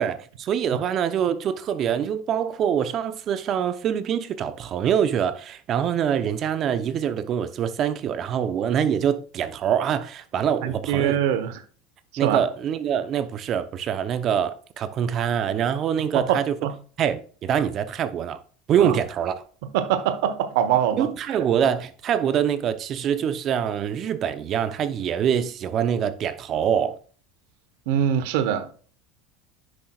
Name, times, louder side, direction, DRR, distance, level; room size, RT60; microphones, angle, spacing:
voice 1, 0.0-11.2 12.2-16.6 17.0-18.4 18.7-19.3 21.0-27.0, right 8 dB, 45° right, 0.8 m, -24 dB
voice 2, 10.6-11.6 12.2-12.4 16.1-16.7 18.8-19.0 19.6-21.4 27.9-28.7, right 9 dB, 75° right, 1.1 m, -24 dB
10.5 x 6.4 x 2.4 m
supercardioid pair, 115°, 0 cm